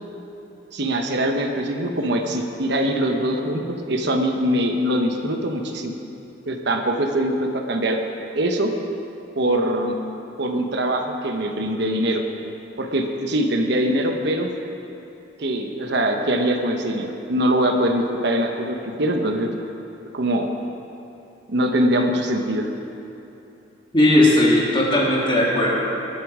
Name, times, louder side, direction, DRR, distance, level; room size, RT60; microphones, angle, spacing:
voice 1, 0.7-6.0 6.5-8.0 8.3-8.7 9.3-10.0 10.4-12.2 12.8-14.5 15.4-19.5 20.1-20.5 21.5-22.7, right 1 dB, 65° right, 3 dB, 1.1 m, -22 dB
voice 2, 23.9-25.7, left 1 dB, 30° left, -5 dB, 3.1 m, -17 dB
20.0 x 9.6 x 5.0 m, 3.0 s
head